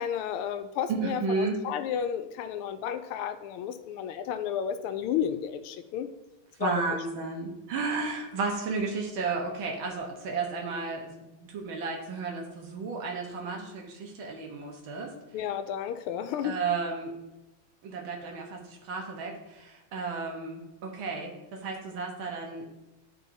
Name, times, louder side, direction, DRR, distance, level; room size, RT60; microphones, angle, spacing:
voice 1, 0.0-6.1 6.6-6.8 15.3-16.6, left 9 dB, 90° left, 9 dB, 1.5 m, -32 dB
voice 2, 0.9-1.6 6.6-15.1 16.4-17.1 17.8-22.7, right 4 dB, 70° right, 0 dB, 1.9 m, -33 dB
12.0 x 4.4 x 2.7 m, 0.99 s
omnidirectional pair, 2.3 m